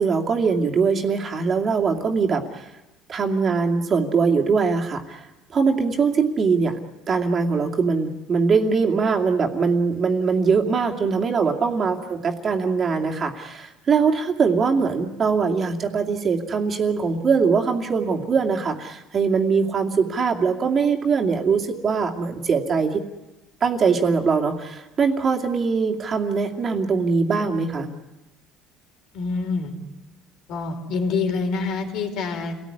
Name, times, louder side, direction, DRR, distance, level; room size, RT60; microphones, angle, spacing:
voice 1, 0.0-2.6 3.1-5.2 5.5-6.8 7.1-23.0 23.6-27.9, right 5 dB, 30° right, 2 dB, 2.5 m, -22 dB
voice 2, 29.1-29.7 30.5-32.6, left 4 dB, 60° left, 6 dB, 4.6 m, -26 dB
29.5 x 18.5 x 9.9 m, 1.0 s
cardioid pair, 160°, 0 cm